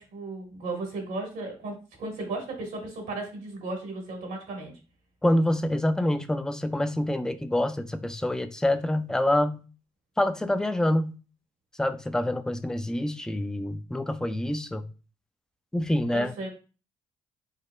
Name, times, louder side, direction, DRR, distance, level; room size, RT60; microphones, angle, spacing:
voice 1, 0.0-4.7 16.1-16.5, right 2 dB, 80° right, 1.4 m, -35 dB
voice 2, 5.2-9.6 10.2-11.1 11.8-14.8 15.7-16.3, left 1 dB, 5° left, 0.4 m, -26 dB
4.8 x 2.0 x 2.2 m
hypercardioid pair, 50°, 15 cm